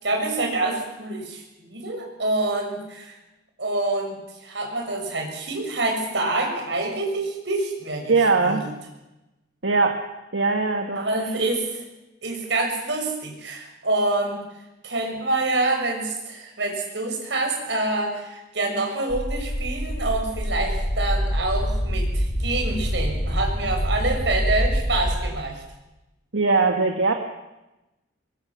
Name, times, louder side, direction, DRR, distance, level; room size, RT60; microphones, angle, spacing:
voice 1, 0.0-3.1 3.6-8.1 8.4-8.6 10.9-11.7 12.2-14.4 14.8-25.6, right 2 dB, 70° right, 2 dB, 6.5 m, -26 dB
voice 2, 8.1-8.6 9.6-10.1 10.3-11.0 26.3-27.1, right 3 dB, 85° right, 4 dB, 1.8 m, -20 dB
sound 1, 19.1-25.2, equal, 40° left, 4.4 m, -25 dB
23.0 x 22.0 x 7.2 m, 0.99 s
head